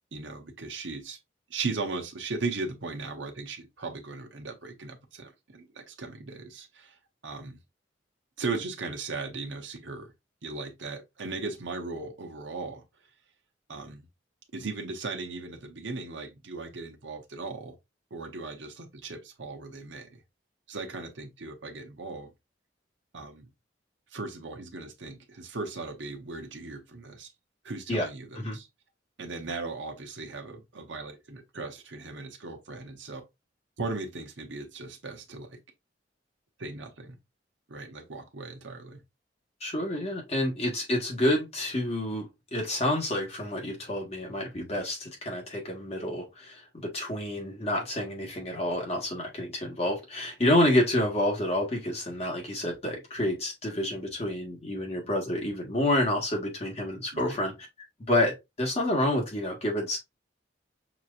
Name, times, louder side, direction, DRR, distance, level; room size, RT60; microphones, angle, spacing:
voice 1, 0.1-1.2 1.5-7.0 7.2-7.6 8.4-10.1 10.4-12.8 13.7-14.0 14.5-17.8 18.1-20.2 20.7-22.3 23.1-23.5 24.1-27.3 27.6-28.7 29.2-33.2 33.8-35.6 36.6-37.2 37.7-39.0 57.1-57.4, right 3 dB, 85° right, 1.0 m, -37 dB
voice 2, 39.6-57.5 58.1-60.0, left 1 dB, 35° left, 1.8 m, -28 dB
6.0 x 3.0 x 2.5 m
head